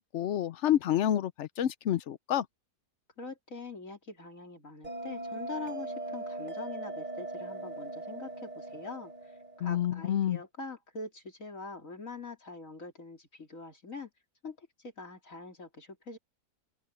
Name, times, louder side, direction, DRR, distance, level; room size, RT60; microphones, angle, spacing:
voice 1, 0.0-2.5 9.6-10.4, left 11 dB, 65° left, 0.7 m, -29 dB
voice 2, 3.2-9.1 9.6-14.1 14.4-16.2, left 3 dB, 50° left, 3.9 m, -44 dB
Bell, 4.8-9.9, right 2 dB, 25° right, 4.0 m, -40 dB
open air
omnidirectional pair, 1.8 m